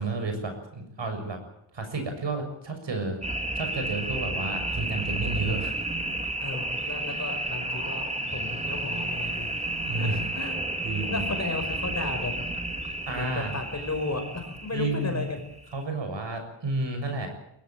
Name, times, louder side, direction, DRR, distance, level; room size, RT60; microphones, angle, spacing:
voice 1, 0.0-1.4 1.7-3.2 3.6-5.7 9.9-10.2 10.8-11.3 13.1-13.5 14.7-15.2 15.7-17.3, right 3 dB, 60° right, 6 dB, 7.1 m, -31 dB
sound 1, 3.2-15.8, right 1 dB, 15° right, 2.0 m, -32 dB
voice 2, 6.4-9.5 9.9-10.6 11.1-12.3 13.1-15.4, left 3 dB, 35° left, 5 dB, 5.6 m, -34 dB
23.0 x 17.0 x 9.0 m, 0.79 s
wide cardioid pair, 140°, 48 cm